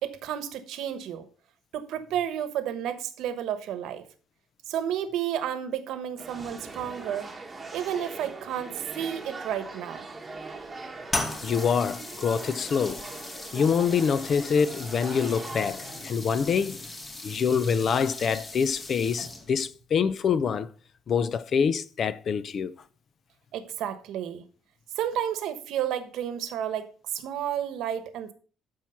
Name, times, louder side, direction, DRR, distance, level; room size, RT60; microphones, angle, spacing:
voice 1, 0.0-1.3 1.7-4.1 4.7-7.3 7.7-10.1 23.5-24.4 24.9-28.3, right 10 dB, 70° right, 1.2 m, -31 dB
sound 1, 6.2-16.1, right 3 dB, 15° right, 1.2 m, -41 dB
sound 2, 11.1-19.7, left 2 dB, 20° left, 1.3 m, -38 dB
voice 2, 11.4-13.0 13.5-16.9 17.2-20.7 21.1-22.7, left 6 dB, 40° left, 0.5 m, -25 dB
12.0 x 4.6 x 5.7 m
cardioid pair, 145°, 0 cm